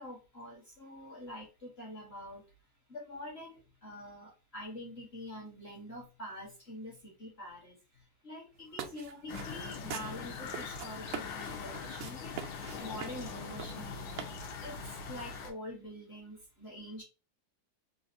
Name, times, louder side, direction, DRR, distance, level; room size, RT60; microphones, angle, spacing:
voice 1, 0.0-2.5 2.9-14.2 14.6-17.0, left 1 dB, 40° left, 1.0 m, -46 dB
sound 1, 8.6-14.8, right 9 dB, 85° right, 1.6 m, -44 dB
sound 2, 9.3-15.5, left 5 dB, 70° left, 1.4 m, -42 dB
4.0 x 2.5 x 2.5 m
omnidirectional pair, 2.4 m